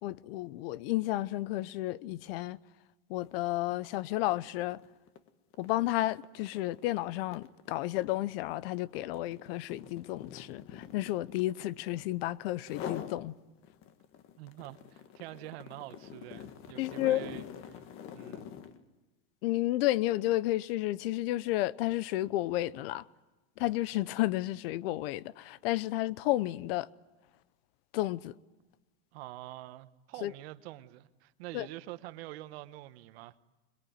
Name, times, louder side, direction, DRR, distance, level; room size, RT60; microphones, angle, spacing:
voice 1, 0.0-2.6 3.1-4.8 5.6-13.3 16.8-17.2 19.4-23.0 23.6-26.9 27.9-28.3 30.2-30.3 31.5-31.7, left 16 dB, 65° left, 0.8 m, -32 dB
sound 1, 3.2-3.4 3.7-12.2 12.6-13.2 13.6-18.8, left 9 dB, 40° left, 1.6 m, -46 dB
voice 2, 14.4-17.8 18.1-18.5 29.1-33.4, right 16 dB, 70° right, 1.2 m, -46 dB
22.5 x 22.5 x 9.4 m
supercardioid pair, 140°, 32 cm